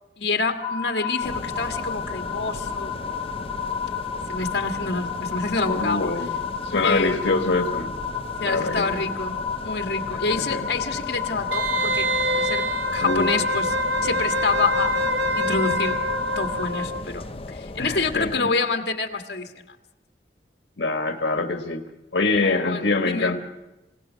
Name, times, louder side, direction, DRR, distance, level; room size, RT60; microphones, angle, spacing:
voice 1, 0.2-3.0 4.3-6.1 6.8-7.5 8.4-12.1 12.4-13.7 14.0-14.9 15.4-16.0 16.3-19.5 22.4-23.4, left 3 dB, 70° left, 4 dB, 1.7 m, -27 dB
sound 1, 0.6-16.7, left 6 dB, 5° left, 1.7 m, -31 dB
sound 2, 1.2-18.4, left 2 dB, 35° left, 0.6 m, -37 dB
voice 2, 5.6-6.3 6.6-7.9 8.4-9.0 10.1-10.7 13.0-13.3 17.8-18.5 20.8-21.8 22.1-23.4, left 3 dB, 85° left, 5 dB, 1.5 m, -24 dB
Wind instrument woodwind instrument, 11.5-17.1 17.4-17.5, equal, 75° right, 0.9 m, -25 dB
27.0 x 17.5 x 6.3 m, 0.99 s
head